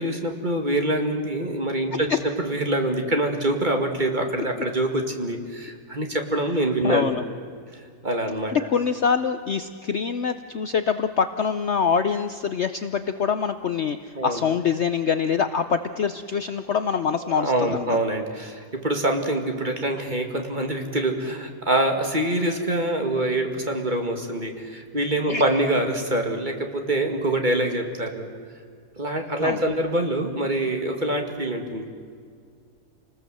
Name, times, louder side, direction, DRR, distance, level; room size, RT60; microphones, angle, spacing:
voice 1, 0.0-7.1 8.0-8.6 14.2-14.4 17.2-28.3 29.0-31.9, right 1 dB, 30° right, 4 dB, 2.2 m, -25 dB
voice 2, 6.8-7.2 8.5-18.0 25.3-25.6 29.4-29.6, left 6 dB, 55° left, 9 dB, 0.9 m, -25 dB
29.0 x 19.5 x 7.8 m, 2.1 s
omnidirectional pair, 1.7 m